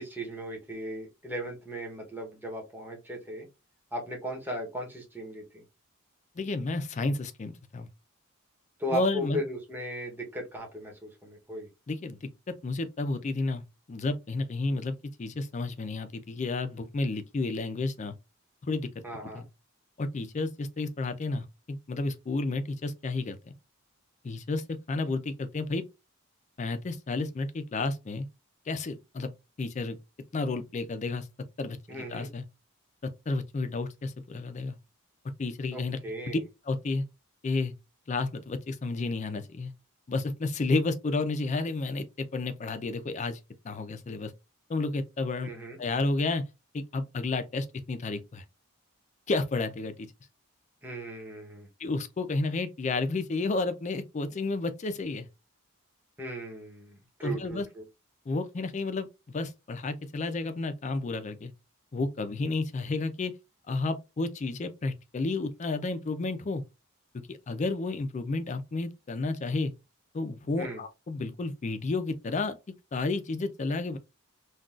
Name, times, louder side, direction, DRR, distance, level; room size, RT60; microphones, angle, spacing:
voice 1, 0.0-3.5 3.9-5.6 8.8-11.7 19.0-19.4 31.9-32.3 35.7-36.4 45.4-45.8 50.8-51.7 56.2-57.8 70.6-70.8, equal, 10° right, 0.8 m, -37 dB
voice 2, 6.4-7.9 8.9-9.4 11.9-12.3 12.6-13.6 13.9-18.2 18.7-19.0 19.3-19.4 20.0-23.5 24.2-25.8 26.6-28.3 28.7-29.3 29.6-30.0 30.3-31.3 31.6-32.4 33.3-34.8 35.4-36.0 36.3-36.4 36.7-37.0 37.4-37.7 38.1-39.7 40.1-43.4 43.6-44.3 44.7-45.5 45.8-46.4 46.7-48.4 49.3-50.1 51.8-55.3 57.2-57.7 58.3-59.1 59.3-61.5 61.9-63.3 63.7-66.6 67.1-69.7 70.1-72.6 72.9-74.0, left 3 dB, 35° left, 0.4 m, -31 dB
3.7 x 2.3 x 2.4 m
head